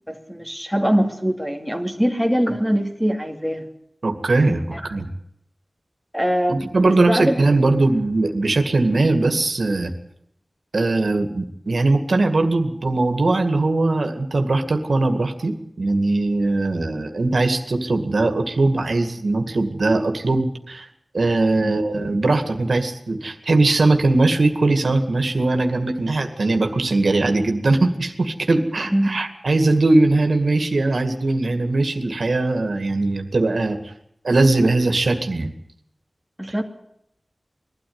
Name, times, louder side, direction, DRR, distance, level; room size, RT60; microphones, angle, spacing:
voice 1, 0.1-3.6 4.7-4.8 6.1-7.4 21.6-21.7 28.9-29.2 36.4-36.6, equal, 5° left, 4 dB, 2.7 m, -22 dB
voice 2, 4.0-4.6 4.9-5.1 6.5-9.9 10.7-20.9 21.1-33.8 34.2-35.5 36.5-36.6, right 2 dB, 70° right, 6 dB, 2.1 m, -20 dB
21.0 x 13.0 x 9.6 m, 0.76 s
wide cardioid pair, 80°, 0 cm